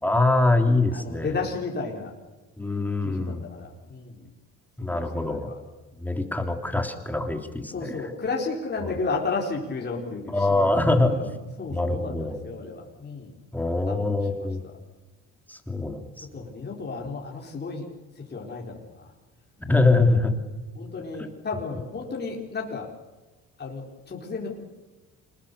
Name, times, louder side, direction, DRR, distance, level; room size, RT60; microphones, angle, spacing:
voice 1, 0.0-1.3 2.6-3.4 4.8-5.5 6.0-8.1 8.8-8.9 10.3-11.1 11.7-12.4 13.5-14.6 15.5-16.5 19.6-20.3, left 2 dB, 5° left, 5 dB, 3.2 m, -24 dB
voice 2, 0.9-2.1 3.0-4.3 4.9-5.5 7.7-11.3 11.6-13.3 13.9-14.7 16.3-17.9 18.2-19.1 20.7-22.9 23.6-24.6, left 4 dB, 35° left, -1 dB, 4.4 m, -33 dB
26.0 x 20.5 x 6.9 m, 1.2 s
cardioid pair, 100°, 30 cm